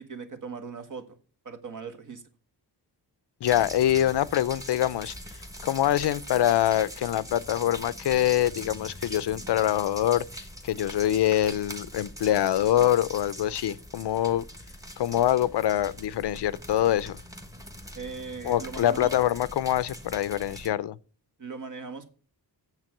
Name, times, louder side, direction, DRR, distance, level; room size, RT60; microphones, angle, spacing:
voice 1, 0.1-1.2 1.4-2.2 17.9-19.1 21.4-22.1, right 5 dB, 50° right, 1.6 m, -39 dB
voice 2, 3.4-5.1 5.6-10.2 10.6-14.4 15.0-17.2 18.4-21.0, left 12 dB, 90° left, 0.6 m, -24 dB
sound 1, 3.4-20.7, equal, 10° right, 1.2 m, -42 dB
9.0 x 7.5 x 7.7 m
wide cardioid pair, 155°, 40 cm